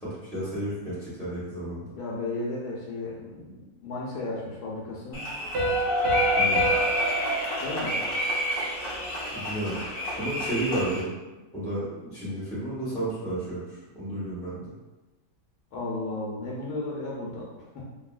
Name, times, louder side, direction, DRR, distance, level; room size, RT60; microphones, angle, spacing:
voice 1, 0.0-1.9 6.4-6.6 9.3-11.1 11.5-14.7, right 1 dB, 5° left, -10 dB, 0.8 m, -32 dB
voice 2, 2.0-5.3 7.6-8.0 15.7-17.9, left 2 dB, 85° left, -4 dB, 1.2 m, -34 dB
sound 1, 5.1-11.0, left 1 dB, 40° left, 0.6 m, -28 dB
Piano, 5.5-9.0, right 3 dB, 65° right, 0.6 m, -31 dB
2.8 x 2.6 x 2.3 m, 1.1 s
omnidirectional pair, 1.6 m